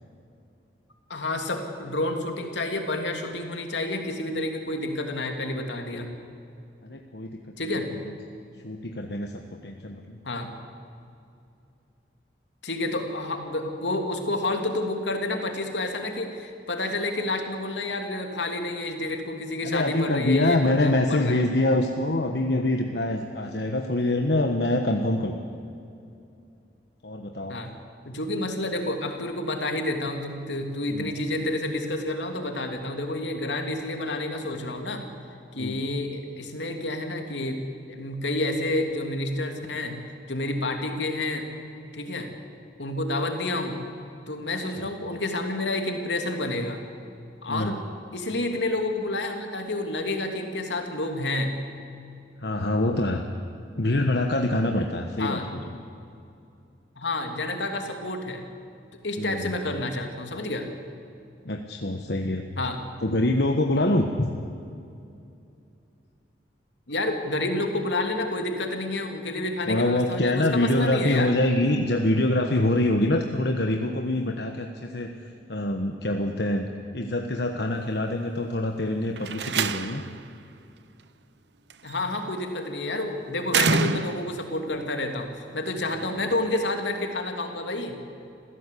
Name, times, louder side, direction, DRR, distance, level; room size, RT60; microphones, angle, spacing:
voice 1, 1.1-6.1 7.6-7.9 10.2-10.5 12.6-21.3 27.5-27.7 28.0-35.1 35.5-37.6 37.9-41.5 41.9-42.3 42.8-43.8 44.3-46.8 47.4-47.8 48.1-51.5 55.2-55.5 57.0-58.4 59.0-60.7 62.6-62.8 66.9-71.3 81.8-88.0, left 2 dB, 80° left, 4 dB, 2.9 m, -29 dB
voice 2, 6.8-8.1 8.6-10.2 19.6-25.6 27.0-27.6 30.9-31.1 35.5-35.8 44.8-44.9 47.5-47.8 52.4-53.2 53.8-55.7 59.2-59.5 61.4-62.5 63.0-64.3 69.7-75.1 75.5-76.7 76.9-80.0 86.0-86.1, left 1 dB, 65° left, 3 dB, 1.3 m, -25 dB
Slam, 79.2-80.2 81.7-82.1 83.5-84.5, right 4 dB, 75° right, 0.9 m, -26 dB
27.5 x 16.0 x 8.5 m, 2.6 s
head